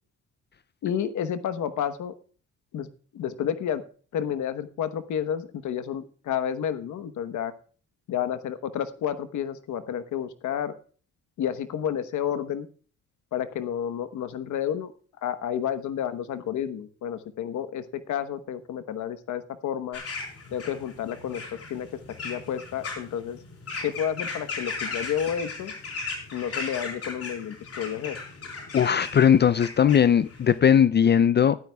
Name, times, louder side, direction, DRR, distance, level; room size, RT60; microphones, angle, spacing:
voice 1, 0.8-2.1 2.7-2.9 3.1-3.8 4.1-7.5 8.1-10.7 11.4-12.7 13.3-14.9 15.2-20.0 20.5-21.4 21.7-21.9 22.2-23.4 23.8-25.7 26.3-28.2, left 9 dB, 75° left, 1.1 m, -30 dB
sound 1, 19.9-30.6, left 4 dB, 50° left, 4.1 m, -37 dB
voice 2, 28.7-31.6, left 8 dB, 35° left, 0.4 m, -19 dB
15.0 x 12.5 x 2.3 m
cardioid pair, 90°, 30 cm